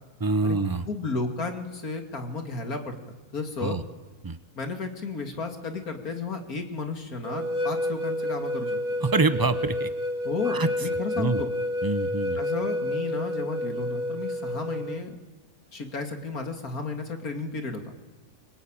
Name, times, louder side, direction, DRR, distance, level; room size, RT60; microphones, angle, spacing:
voice 1, 0.2-0.8 3.6-3.8 4.2-4.4 9.0-9.9 10.5-10.7 11.2-11.4 11.8-12.4, right 3 dB, 20° right, 11 dB, 0.7 m, -25 dB
voice 2, 0.9-3.0 3.3-3.8 4.5-8.8 10.2-11.5 12.4-15.2 15.7-17.9, left 4 dB, 70° left, 4 dB, 3.0 m, -33 dB
sound 1, 7.2-15.0, left 1 dB, 70° right, 2.8 m, -30 dB
24.5 x 23.5 x 9.0 m, 1.2 s
omnidirectional pair, 1.6 m